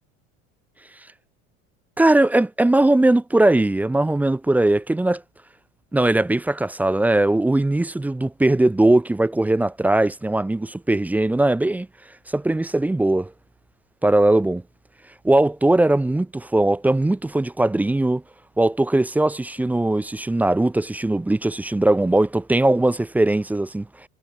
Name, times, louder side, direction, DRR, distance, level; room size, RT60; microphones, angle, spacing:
voice 1, 2.0-5.2 5.9-11.9 12.3-13.3 14.0-14.6 15.2-18.2 18.6-23.9, right 2 dB, 5° right, 0.4 m, -19 dB
supercardioid pair, 105°, 32 cm